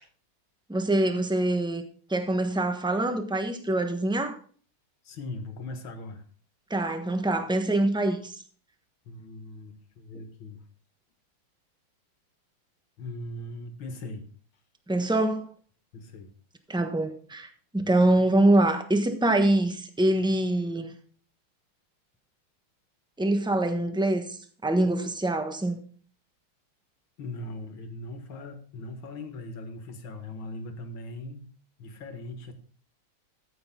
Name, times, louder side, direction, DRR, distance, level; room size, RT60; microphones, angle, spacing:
voice 1, 0.7-1.8 2.1-4.4 6.7-8.3 14.9-15.5 16.7-20.9 23.2-25.8, right 1 dB, 5° right, 0.7 m, -25 dB
voice 2, 5.0-6.2 9.1-10.6 13.0-14.3 15.9-16.3 27.2-31.5 31.8-32.5, left 2 dB, 70° left, 2.3 m, -39 dB
13.5 x 8.0 x 3.7 m
omnidirectional pair, 2.3 m